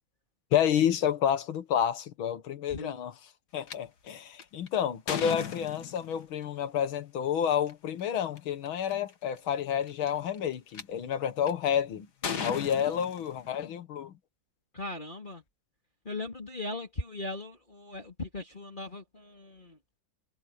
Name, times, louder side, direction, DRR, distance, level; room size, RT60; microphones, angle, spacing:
voice 1, 0.5-3.1 3.5-12.1 12.4-14.1, left 9 dB, 80° left, 2.1 m, -29 dB
sound 1, 3.7-3.8 4.4-6.3 7.5-7.7 8.4-8.5 8.7-9.1 9.8-10.8 11.5-11.8 12.2-13.7, left 6 dB, 55° left, 2.1 m, -36 dB
voice 2, 14.7-15.4 16.1-19.7, left 2 dB, 25° left, 3.6 m, -38 dB
omnidirectional pair, 2.2 m